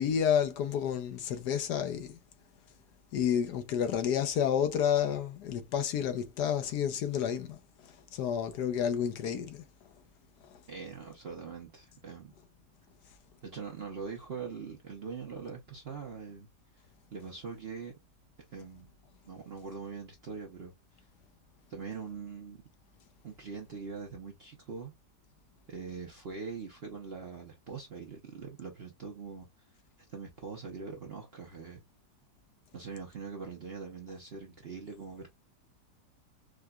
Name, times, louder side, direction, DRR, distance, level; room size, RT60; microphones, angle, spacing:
voice 1, 0.0-2.2 3.1-7.6 8.1-9.6, left 8 dB, 70° left, 1.2 m, -30 dB
voice 2, 10.7-12.3 13.4-16.5 17.1-17.9 18.5-18.9 19.2-20.7 21.7-22.6 23.2-24.9 25.7-29.5 30.1-31.8 32.7-35.3, right 5 dB, 50° right, 0.7 m, -42 dB
4.8 x 2.2 x 2.2 m
omnidirectional pair, 1.9 m